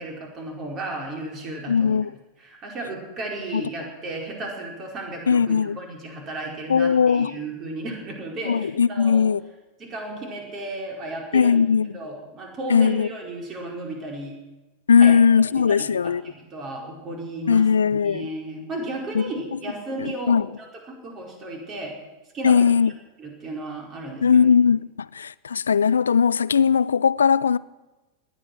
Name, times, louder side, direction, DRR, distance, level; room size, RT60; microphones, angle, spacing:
voice 1, 0.0-2.0 2.4-9.3 9.8-11.6 11.9-14.4 15.0-15.2 15.7-21.9 22.3-22.6 23.2-24.5, right 2 dB, 30° right, 4.8 m, -34 dB
voice 2, 1.7-2.1 3.5-3.6 5.3-5.8 6.7-7.4 8.4-9.4 11.3-12.0 12.7-13.1 14.9-16.2 17.5-18.3 19.1-19.2 19.5-19.6 20.0-20.5 22.4-22.9 24.2-27.6, left 6 dB, 70° left, 0.4 m, -19 dB
18.5 x 12.0 x 6.2 m
figure-of-eight pair, 90°, 0 cm